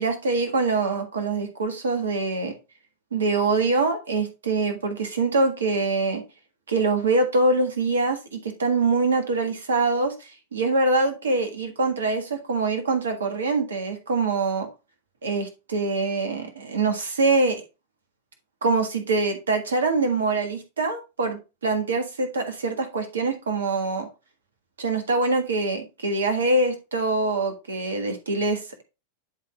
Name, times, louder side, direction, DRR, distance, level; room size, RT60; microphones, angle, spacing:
voice 1, 0.0-2.5 3.1-6.2 6.7-14.7 15.2-17.6 18.6-24.1 24.8-28.8, right 3 dB, 70° right, 6 dB, 1.6 m, -24 dB
11.0 x 3.7 x 3.0 m, 0.27 s
figure-of-eight pair, 90°, 0 cm